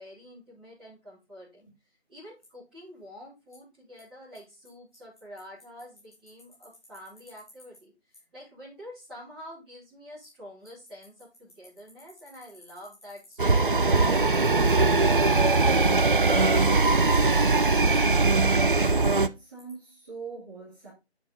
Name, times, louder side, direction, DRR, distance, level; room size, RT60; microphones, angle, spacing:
voice 1, 0.0-1.7 2.1-14.7, equal, ahead, 2.8 m, -47 dB
Bicycle, 2.4-2.5 3.5-3.6 4.0-4.1 4.3-4.4 4.6-4.7 4.9-7.8 8.1-8.2 10.2-10.3 10.6-19.1 19.6-19.7, left 1 dB, 20° left, 1.8 m, -51 dB
sound 1, 13.4-19.3, right 3 dB, 50° right, 0.4 m, -21 dB
voice 2, 19.0-20.9, right 4 dB, 20° right, 2.3 m, -42 dB
7.8 x 4.8 x 4.0 m
figure-of-eight pair, 160°, 34 cm